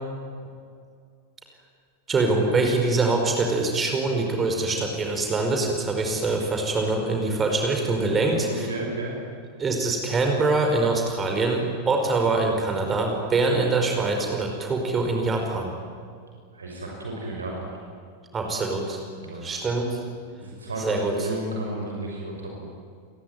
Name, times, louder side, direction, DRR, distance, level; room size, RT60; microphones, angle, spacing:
voice 1, 2.1-8.7 9.6-15.8 18.3-19.0 19.4-20.0 20.8-21.3, right 3 dB, 20° right, 3 dB, 5.1 m, -24 dB
voice 2, 8.2-9.1 16.5-17.7 19.1-19.5 20.4-22.7, right 2 dB, 75° right, -1 dB, 6.2 m, -33 dB
29.5 x 22.0 x 9.4 m, 2.1 s
figure-of-eight pair, 90°, 0 cm